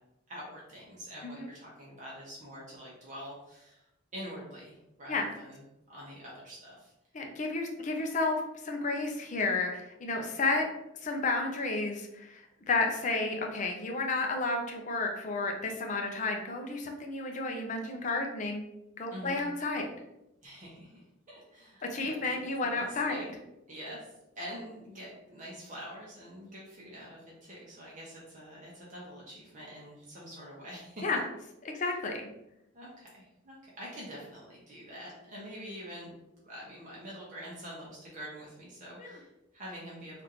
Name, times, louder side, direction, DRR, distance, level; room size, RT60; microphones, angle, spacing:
voice 1, 0.3-3.8 4.1-5.6 5.9-6.9 19.1-19.4 20.4-23.3 23.7-24.1 24.4-31.0 31.8-31.9 32.7-36.2 36.4-40.2, equal, 40° right, -5 dB, 0.8 m, -46 dB
voice 2, 7.1-10.7 11.0-18.6 19.0-19.9 21.9-23.3 31.0-31.2 31.7-32.3 39.0-39.2, left 3 dB, 40° left, 3 dB, 0.5 m, -32 dB
3.4 x 2.4 x 2.9 m, 0.87 s
head